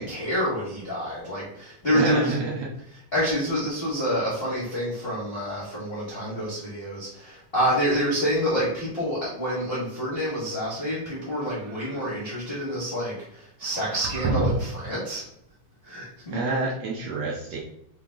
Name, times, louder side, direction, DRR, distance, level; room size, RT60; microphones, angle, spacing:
voice 1, 0.0-2.4 3.1-15.2 15.8-16.4, equal, 50° left, -8 dB, 0.6 m, -28 dB
voice 2, 1.9-2.7 16.3-17.6, right 3 dB, 75° right, -3 dB, 1.6 m, -27 dB
sound 1, 11.3-12.2 13.6-14.9, right 2 dB, 90° right, 1.5 m, -30 dB
5.3 x 2.8 x 3.5 m, 0.74 s
omnidirectional pair, 3.6 m